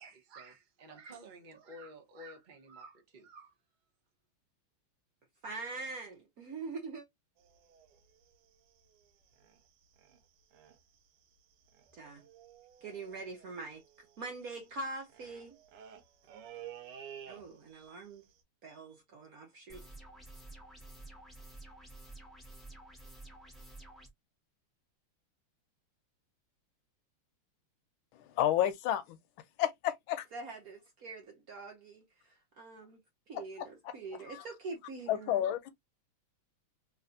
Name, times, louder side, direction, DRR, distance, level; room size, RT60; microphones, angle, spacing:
voice 1, 0.0-3.5, right 1 dB, 45° right, 0.6 m, -51 dB
voice 2, 5.4-7.0 11.9-12.3 12.8-15.6 17.3-18.2 18.6-19.8 30.3-33.0 33.3-35.4, right 3 dB, 65° right, 0.9 m, -44 dB
sound 1, 7.4-9.7 10.0-10.2 10.5-11.0 11.2-11.3 11.5-17.9 18.1-18.4, right 9 dB, 85° right, 1.6 m, -52 dB
sound 2, 19.7-24.1, right 2 dB, ahead, 0.6 m, -51 dB
voice 3, 28.1-29.2 29.6-30.3 33.3-33.9 34.3-34.4 35.1-35.7, left 11 dB, 70° left, 1.4 m, -31 dB
3.3 x 3.2 x 2.5 m
omnidirectional pair, 2.4 m